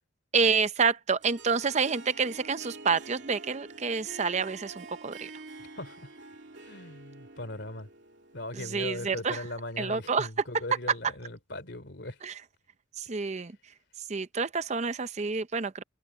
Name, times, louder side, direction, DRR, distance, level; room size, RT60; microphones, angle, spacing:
voice 1, 0.3-5.3 8.5-9.4 9.8-10.3 12.2-12.3 13.0-13.5 14.1-15.8, right 5 dB, 35° right, 0.6 m, -28 dB
Harp, 1.2-9.6, right 3 dB, 60° right, 2.7 m, -48 dB
voice 2, 5.7-6.1 6.6-7.9 8.3-12.2 13.2-13.4, left 1 dB, 60° left, 3.2 m, -39 dB
head